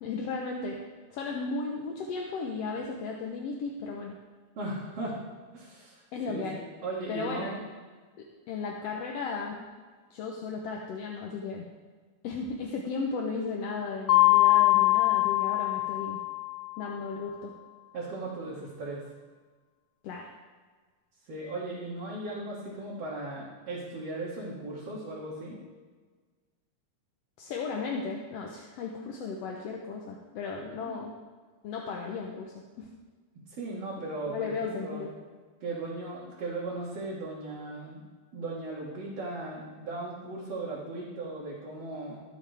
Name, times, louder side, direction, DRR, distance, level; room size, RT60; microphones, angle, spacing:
voice 1, 0.0-0.8 1.1-4.1 6.1-6.6 7.1-7.6 8.2-9.6 10.1-11.6 12.2-16.2 16.8-17.5 20.0-20.3 27.4-31.1 31.6-32.9 34.3-35.1, left 4 dB, 65° left, 0 dB, 1.7 m, -35 dB
voice 2, 4.6-5.2 5.5-6.4 6.8-7.6 17.9-19.0 21.3-25.6 30.8-31.0 33.5-35.0 35.6-38.0 38.3-42.2, right 2 dB, 55° right, -7 dB, 2.9 m, -37 dB
Mallet percussion, 14.1-16.7, left 18 dB, 85° left, 2.4 m, -23 dB
21.0 x 7.2 x 3.5 m, 1.4 s
omnidirectional pair, 3.6 m